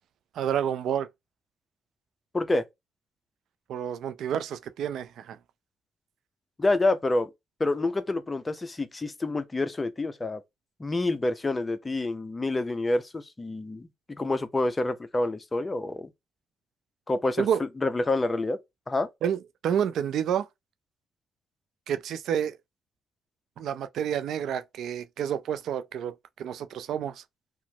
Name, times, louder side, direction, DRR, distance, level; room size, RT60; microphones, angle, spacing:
voice 1, 0.3-1.1 3.7-5.4 17.4-17.6 19.2-20.5 21.9-22.6 23.6-27.2, right 9 dB, 75° right, 0.4 m, -29 dB
voice 2, 2.3-2.6 6.6-7.3 7.6-10.4 10.8-16.1 17.1-17.5 17.8-18.6 18.9-19.1, left 2 dB, 20° left, 0.5 m, -27 dB
2.9 x 2.0 x 2.7 m
cardioid pair, 90°, 0 cm